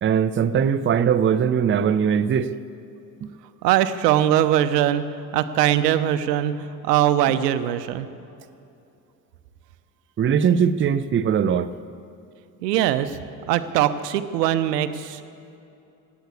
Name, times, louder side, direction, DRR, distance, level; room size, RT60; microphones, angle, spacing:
voice 1, 0.0-2.5 10.2-11.7, right 7 dB, 25° right, 12 dB, 0.6 m, -20 dB
voice 2, 3.6-5.1 5.3-8.1 12.6-13.2 13.5-15.2, right 12 dB, 80° right, 12 dB, 0.9 m, -21 dB
18.0 x 8.4 x 8.3 m, 2.7 s
hypercardioid pair, 65°, 48 cm